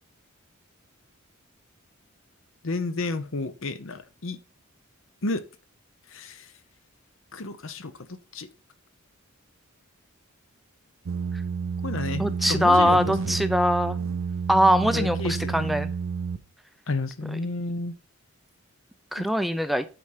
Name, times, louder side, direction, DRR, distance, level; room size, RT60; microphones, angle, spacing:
voice 1, 2.6-4.4 5.2-5.4 6.1-6.4 7.3-7.9 8.3-8.5 11.8-13.0 14.9-15.8 16.9-17.9 19.2-19.3, left 3 dB, 65° left, 0.8 m, -31 dB
sound 1, 11.1-16.4, right 5 dB, 70° right, 0.5 m, -30 dB
voice 2, 12.2-14.0 14.5-15.9 17.3-17.4 19.1-19.9, equal, ahead, 0.4 m, -22 dB
9.1 x 4.3 x 4.9 m
head